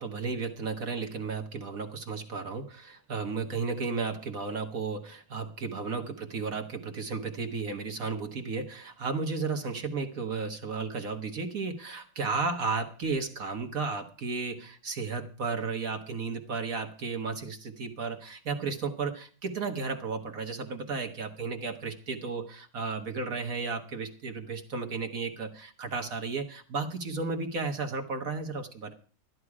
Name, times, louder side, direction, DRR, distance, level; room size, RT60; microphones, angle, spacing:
voice 1, 0.0-28.9, right 4 dB, 55° right, 5 dB, 1.7 m, -34 dB
13.5 x 11.0 x 4.9 m, 0.40 s
omnidirectional pair, 1.8 m